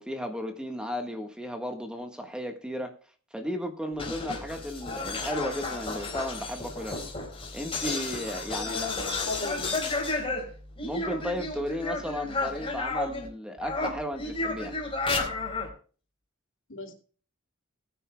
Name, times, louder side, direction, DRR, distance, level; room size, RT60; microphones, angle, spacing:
voice 1, 0.0-2.9 3.3-7.0 7.5-9.1 10.8-14.8, equal, 5° right, 5 dB, 1.4 m, -34 dB
sound 1, 3.9-13.3 13.6-15.7, left 3 dB, 25° left, 3.8 m, -32 dB
voice 2, 8.7-9.7 16.7-16.9, left 2 dB, 60° left, 4 dB, 2.5 m, -37 dB
20.5 x 9.9 x 2.2 m, 0.39 s
head